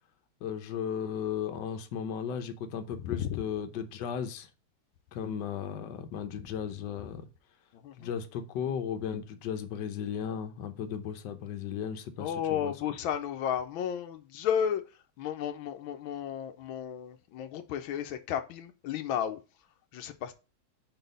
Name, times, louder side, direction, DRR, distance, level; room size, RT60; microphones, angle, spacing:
voice 1, 0.4-4.5 5.1-7.2 8.0-12.7, left 8 dB, 65° left, 1.4 m, -35 dB
voice 2, 3.0-3.4 7.8-8.1 12.2-14.8 15.2-19.4 19.9-20.3, left 9 dB, 90° left, 1.5 m, -33 dB
4.9 x 4.0 x 5.2 m
omnidirectional pair, 2.1 m